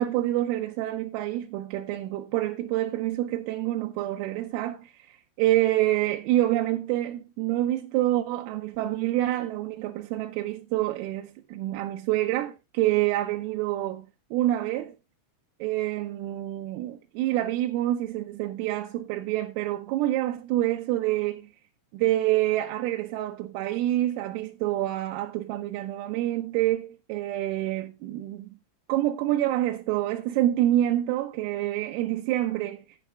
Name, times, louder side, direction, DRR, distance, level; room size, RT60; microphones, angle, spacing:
voice 1, 0.0-14.1 14.3-14.9 15.6-21.5 21.9-28.5 28.9-32.8, right 14 dB, 85° right, 3.3 m, -27 dB
15.5 x 9.1 x 2.2 m
omnidirectional pair, 6.0 m